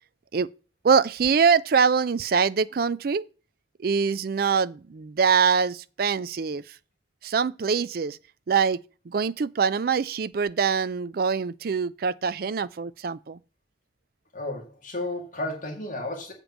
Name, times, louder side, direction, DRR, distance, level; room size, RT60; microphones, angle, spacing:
voice 1, 0.8-3.3 3.8-6.6 7.2-8.2 8.5-8.8 9.1-13.4, right 6 dB, 50° right, 0.4 m, -24 dB
voice 2, 14.3-16.3, left 2 dB, 45° left, 1.9 m, -33 dB
7.4 x 5.2 x 7.2 m
head